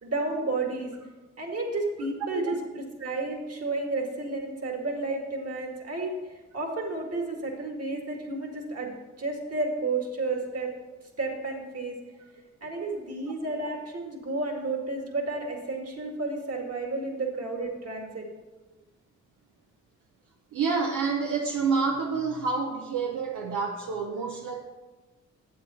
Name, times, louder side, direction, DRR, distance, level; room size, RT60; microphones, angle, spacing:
voice 1, 0.0-0.9 1.4-6.2 6.5-8.9 9.2-10.7 11.2-12.0 12.6-18.3, right 3 dB, 50° right, 1 dB, 2.3 m, -31 dB
voice 2, 20.5-24.6, right 5 dB, 85° right, 1 dB, 0.8 m, -28 dB
8.4 x 7.5 x 4.4 m, 1.1 s
supercardioid pair, 55°, 30 cm